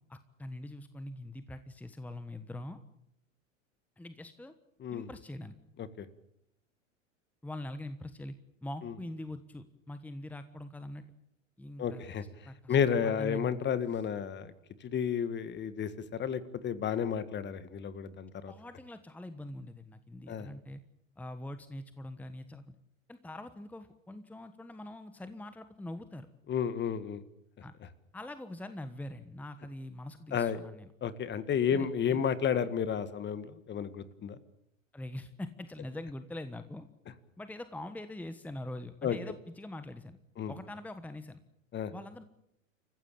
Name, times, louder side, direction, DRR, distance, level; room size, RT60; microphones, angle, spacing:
voice 1, 0.1-2.8 4.0-4.5 4.9-5.5 7.4-8.3 8.6-11.0 11.6-12.0 12.4-13.5 18.5-20.8 21.2-22.6 23.1-26.3 27.6-27.7 28.1-30.9 31.7-32.2 34.9-36.9 37.4-40.2 40.5-41.4 41.9-42.2, left 1 dB, 5° left, 11 dB, 1.2 m, -43 dB
voice 2, 11.8-12.2 12.7-14.5 14.8-18.5 20.3-20.5 26.5-27.2 30.3-30.6 31.0-34.4 39.0-39.2 40.4-40.5 41.7-41.9, left 7 dB, 25° left, 14 dB, 1.8 m, -32 dB
28.5 x 15.5 x 8.6 m, 0.78 s
hypercardioid pair, 100°, 39 cm